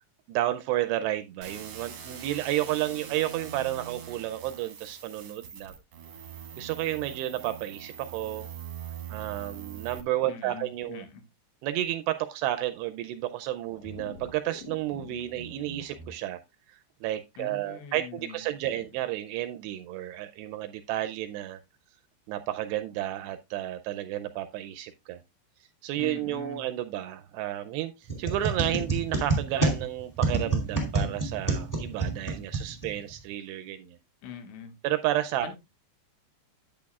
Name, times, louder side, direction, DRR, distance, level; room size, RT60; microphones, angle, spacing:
voice 1, 0.3-5.7 6.6-8.5 9.1-11.1 11.6-16.4 17.0-21.6 22.3-25.2 25.8-34.0 34.8-35.5, right 14 dB, 80° right, 9 dB, 2.5 m, -31 dB
sound 1, 1.4-10.0, right 9 dB, 65° right, 1.5 m, -43 dB
voice 2, 10.3-11.2 17.4-18.8 26.0-26.7 34.2-34.8 35.4-35.5, left 7 dB, 90° left, 6 dB, 3.8 m, -43 dB
sound 2, 13.7-16.1, equal, 65° left, 2.0 m, -45 dB
sound 3, 28.1-33.2, right 3 dB, 15° left, 0.6 m, -29 dB
10.5 x 8.5 x 2.3 m, 0.22 s
omnidirectional pair, 5.3 m